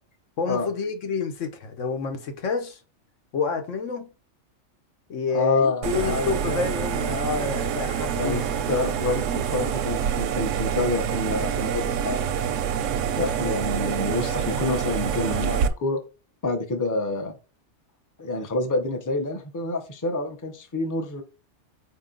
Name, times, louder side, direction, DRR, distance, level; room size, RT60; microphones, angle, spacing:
voice 1, 0.4-2.8 3.3-4.1 5.1-8.6, left 5 dB, 90° left, 1.2 m, -29 dB
voice 2, 5.3-6.7 8.1-12.2 13.2-16.0 16.4-17.4 18.2-21.2, left 2 dB, 20° left, 0.5 m, -27 dB
sound 1, 5.8-15.7, right 8 dB, 90° right, 0.9 m, -26 dB
4.4 x 2.9 x 3.7 m
omnidirectional pair, 1.2 m